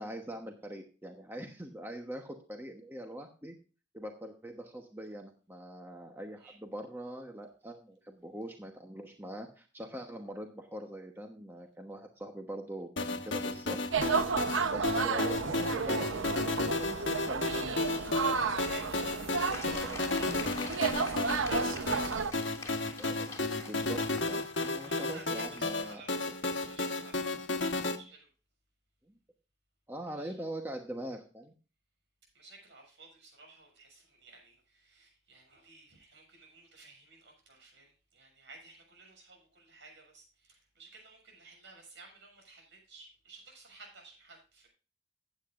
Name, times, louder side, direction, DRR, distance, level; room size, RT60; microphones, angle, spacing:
voice 1, 0.0-3.5 3.9-13.8 14.7-18.4 19.5-20.0 23.0-24.0 24.3-26.0 29.9-31.5, right 1 dB, 10° right, 1.1 m, -43 dB
sound 1, 13.0-28.0, left 2 dB, 70° left, 1.3 m, -33 dB
sound 2, 13.9-22.3, right 5 dB, 85° right, 0.9 m, -32 dB
voice 2, 18.2-22.2 24.8-28.3 30.2-30.3 32.3-44.7, right 3 dB, 65° right, 6.8 m, -54 dB
sound 3, 19.5-25.9, left 3 dB, 15° left, 2.8 m, -46 dB
16.0 x 9.5 x 2.5 m
head